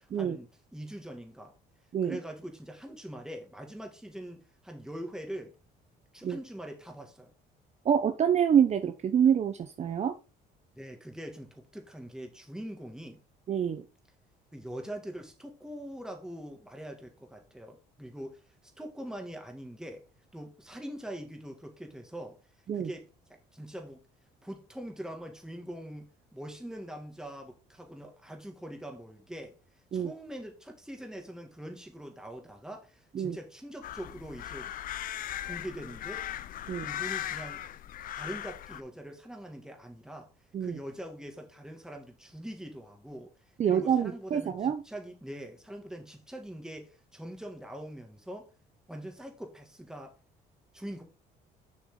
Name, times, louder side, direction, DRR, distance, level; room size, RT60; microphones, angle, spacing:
voice 1, 0.0-1.5 2.0-5.6 6.1-7.3 10.8-13.2 14.5-20.0 20.3-22.4 22.7-24.0 24.4-29.6 29.9-34.7 35.4-36.2 36.8-37.6 38.1-40.3 40.6-43.3 43.7-44.6 44.9-48.5 48.9-50.2 50.7-51.0, right 1 dB, 5° right, 2.2 m, -43 dB
voice 2, 7.8-10.1 13.5-13.8 22.7-22.9 29.9-30.1 33.1-33.4 36.7-36.9 40.5-40.8 43.6-44.8, right 8 dB, 40° right, 0.8 m, -26 dB
sound 1, 33.8-38.8, left 12 dB, 55° left, 0.6 m, -38 dB
7.2 x 6.0 x 3.8 m
cardioid pair, 110°, 17 cm